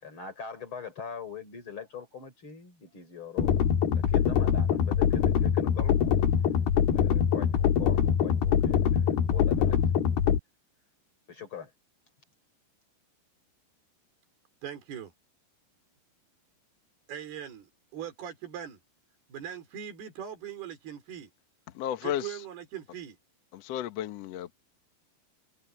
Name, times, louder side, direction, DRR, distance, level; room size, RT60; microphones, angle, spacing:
voice 1, 0.0-3.6 3.9-6.1 6.9-9.8 11.3-11.7, left 6 dB, 30° left, 4.9 m, -42 dB
sound 1, 3.4-10.4, left 8 dB, 70° left, 3.5 m, -24 dB
voice 2, 14.6-15.1 17.1-18.8 19.3-21.3 22.0-23.2, right 9 dB, 70° right, 6.2 m, -40 dB
voice 3, 21.7-22.4 23.5-24.6, left 11 dB, 90° left, 1.4 m, -33 dB
open air
omnidirectional pair, 4.8 m